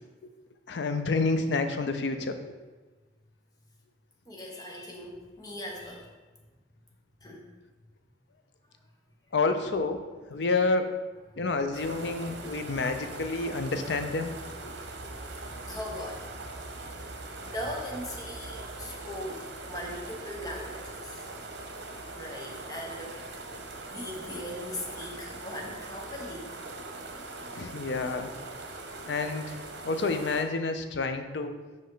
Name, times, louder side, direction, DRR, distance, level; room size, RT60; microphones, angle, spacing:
voice 1, 0.7-2.4 9.3-10.0 10.3-10.9 11.4-14.3 14.6-14.7 27.5-28.3 29.1-29.6 29.8-31.6, left 3 dB, 80° left, 7 dB, 0.6 m, -29 dB
voice 2, 4.3-6.1 7.2-7.5 11.4-11.5 12.6-12.7 15.1-15.2 15.7-16.6 17.4-21.2 22.1-23.3 23.9-26.5, left 1 dB, 20° left, -1 dB, 1.0 m, -39 dB
sound 1, 11.7-30.4, right 2 dB, 85° right, 0.9 m, -41 dB
5.4 x 5.3 x 3.9 m, 1.2 s
head